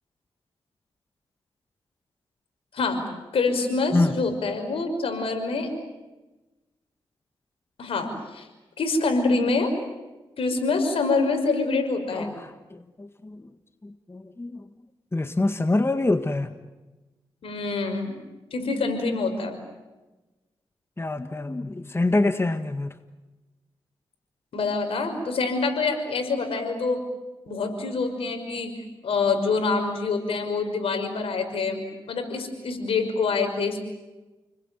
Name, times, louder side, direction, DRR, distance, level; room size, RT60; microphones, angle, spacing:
voice 1, 3.3-5.8 7.8-8.5 8.8-9.7 10.4-12.4 17.4-18.2 18.5-19.6 24.5-27.0 27.5-33.8, left 3 dB, 80° left, 5.6 m, -26 dB
voice 2, 12.7-13.4 13.8-14.6 15.1-16.5 21.0-22.9, left 2 dB, 25° left, 1.6 m, -25 dB
30.0 x 21.0 x 9.2 m
cardioid pair, 55°, 10 cm